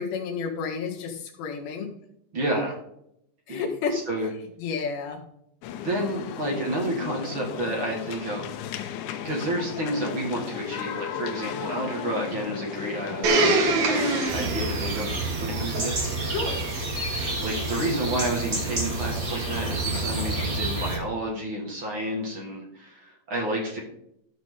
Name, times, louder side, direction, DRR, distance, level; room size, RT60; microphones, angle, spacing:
voice 1, 0.0-1.9 3.5-4.0 4.6-5.2 16.3-16.6, left 5 dB, 70° left, 0 dB, 3.8 m, -30 dB
voice 2, 2.3-2.8 3.5-3.6 3.9-4.3 5.8-8.5 9.2-13.3 13.8-15.1 15.4-16.3 17.4-23.8, right 1 dB, 55° right, -1 dB, 1.4 m, -30 dB
sound 1, 5.6-14.3, left 10 dB, 85° left, 3.1 m, -35 dB
Domestic sounds home sounds, 13.2-18.1 18.8-18.9, right 3 dB, 75° right, 1.7 m, -27 dB
sound 2, 14.3-21.0, right 2 dB, 30° right, 1.7 m, -29 dB
14.0 x 6.2 x 3.7 m, 0.75 s
omnidirectional pair, 5.3 m